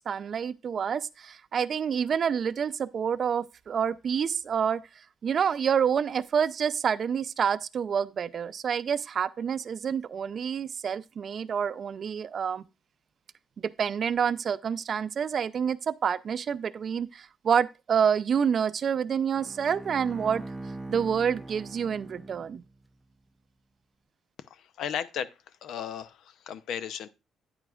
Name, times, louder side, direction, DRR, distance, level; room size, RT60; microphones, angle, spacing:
voice 1, 0.1-4.8 5.2-12.6 13.6-20.4 20.9-22.6, right 7 dB, 55° right, 0.5 m, -28 dB
Bowed string instrument, 19.3-22.9, right 2 dB, 10° right, 0.6 m, -42 dB
voice 2, 24.5-25.3 25.6-27.1, left 8 dB, 80° left, 0.6 m, -35 dB
9.5 x 9.0 x 2.4 m
cardioid pair, 90°, 0 cm